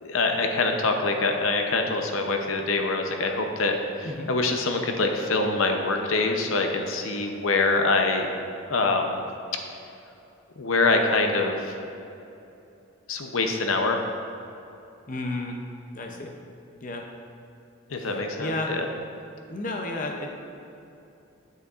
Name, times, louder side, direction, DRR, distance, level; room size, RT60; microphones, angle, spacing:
voice 1, 0.0-8.3 8.7-9.2 10.6-11.7 13.1-14.1 17.9-18.9, left 3 dB, 75° left, 4 dB, 0.7 m, -25 dB
voice 2, 15.1-15.6 15.9-16.3 16.8-17.0 17.9-18.7 19.5-20.3, left 2 dB, 40° left, 1 dB, 0.6 m, -32 dB
9.1 x 8.2 x 2.5 m, 2.8 s
head